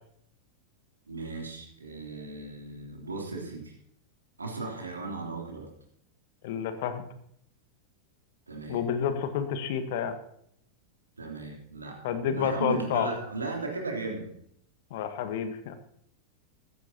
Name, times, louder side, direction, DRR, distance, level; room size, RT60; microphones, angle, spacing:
voice 1, 1.1-3.7 4.4-5.7 8.5-8.8 11.2-14.3, right 3 dB, 75° right, 0 dB, 3.3 m, -36 dB
voice 2, 6.4-7.0 8.7-10.2 12.0-13.1 14.9-15.7, left 8 dB, 50° left, 9 dB, 1.4 m, -29 dB
15.0 x 15.0 x 2.9 m, 0.69 s
figure-of-eight pair, 90°, 0 cm